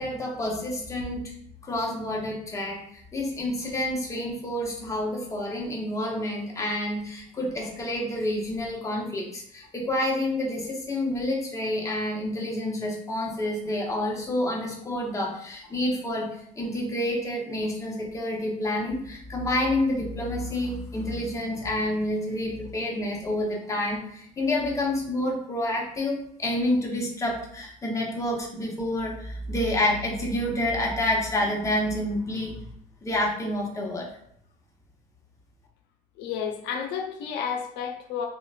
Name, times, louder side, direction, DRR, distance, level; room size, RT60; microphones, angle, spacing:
voice 1, 0.0-1.3 1.6-32.7 33.0-34.1, left 1 dB, 20° left, -1 dB, 0.7 m, -28 dB
voice 2, 36.2-38.3, left 7 dB, 90° left, 3 dB, 0.5 m, -31 dB
3.7 x 2.2 x 2.2 m, 0.70 s
cardioid pair, 110°, 17 cm